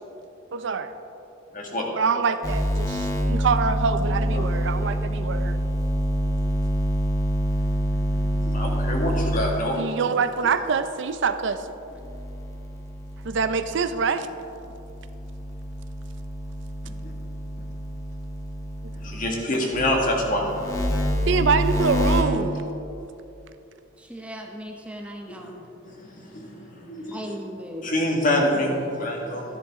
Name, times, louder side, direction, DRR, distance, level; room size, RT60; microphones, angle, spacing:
voice 1, 0.5-0.9 2.0-5.6 9.7-11.6 13.2-14.3 21.3-22.6, right 5 dB, 60° right, 10 dB, 0.5 m, -25 dB
voice 2, 1.5-1.8 4.3-4.5 7.6-10.0 16.8-17.1 18.9-21.3 22.3-22.6 25.3-25.6 25.8-27.4 27.8-29.6, left 1 dB, 45° left, -1 dB, 1.8 m, -27 dB
sound 1, 2.4-9.9 11.9-14.0 14.5-19.3 19.7-22.2, equal, 15° left, 1.1 m, -27 dB
voice 3, 24.1-25.6 27.1-27.9, equal, 5° right, 1 dB, 0.7 m, -37 dB
13.0 x 10.5 x 3.6 m, 2.8 s
head